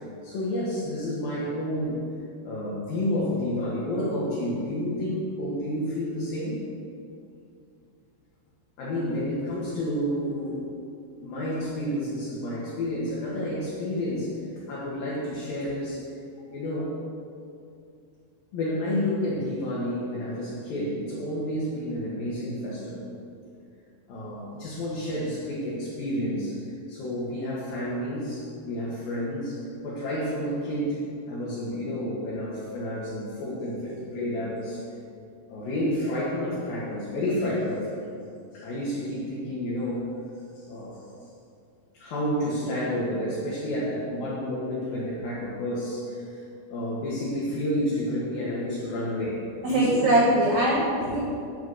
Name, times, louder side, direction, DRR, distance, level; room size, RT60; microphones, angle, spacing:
voice 1, 0.2-2.1 2.4-6.6 8.8-10.6 11.2-14.3 14.7-16.0 16.5-17.0 18.5-23.1 24.1-26.6 26.9-34.8 35.5-38.0 38.5-40.2 40.5-41.0 41.9-46.4 46.7-50.2, left 1 dB, 55° left, -7 dB, 3.0 m, -30 dB
voice 2, 49.6-51.3, right 1 dB, 80° right, -6 dB, 1.6 m, -22 dB
8.3 x 8.1 x 7.8 m, 2.5 s
omnidirectional pair, 5.7 m